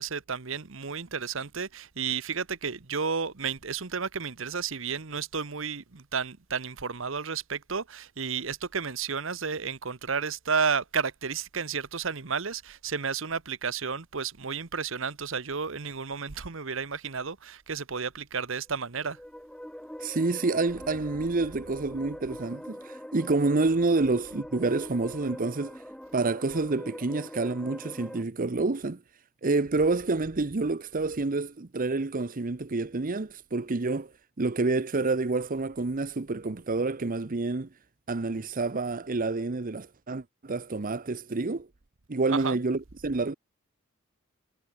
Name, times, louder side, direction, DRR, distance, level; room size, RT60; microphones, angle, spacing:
voice 1, 0.0-19.2 42.3-42.6, right 6 dB, 70° right, 1.2 m, -32 dB
sound 1, 18.9-28.2, equal, 5° left, 1.0 m, -43 dB
voice 2, 20.0-25.8 26.1-29.0 29.4-34.1 34.4-37.7 38.1-41.7 42.1-43.3, right 3 dB, 45° right, 0.8 m, -28 dB
head